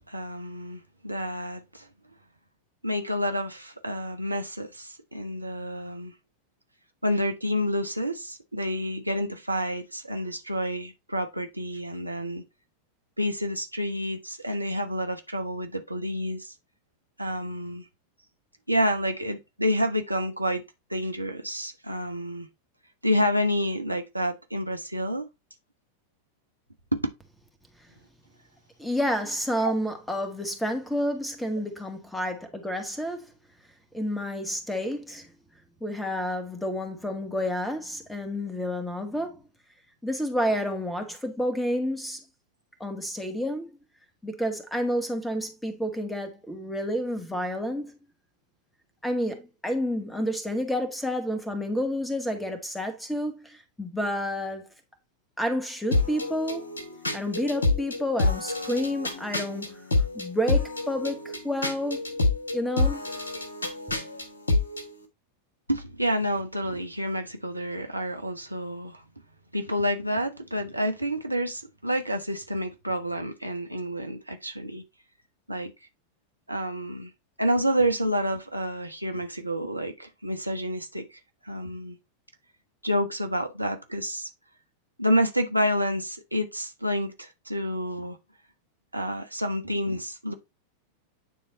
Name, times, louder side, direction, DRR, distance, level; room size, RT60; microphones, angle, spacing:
voice 1, 0.1-1.9 2.8-6.1 7.0-12.4 13.2-16.5 17.2-17.8 18.7-20.6 20.9-22.5 23.0-25.3 26.9-27.0 29.6-29.7 65.7-69.0 69.5-74.8 75.5-75.7 76.5-77.1 77.4-81.0 81.4-82.0 82.8-84.3 85.0-88.2 88.9-90.3, equal, 85° right, 1.1 m, -29 dB
voice 2, 28.8-33.3 33.9-35.3 35.8-39.4 40.0-42.2 42.8-43.7 44.2-47.9 49.0-54.7 55.4-56.7 57.1-59.8 60.1-62.0 62.5-63.1, equal, 5° left, 1.7 m, -30 dB
sound 1, 55.9-64.9, left 2 dB, 75° left, 1.3 m, -28 dB
9.1 x 4.0 x 4.0 m
figure-of-eight pair, 90°, 0 cm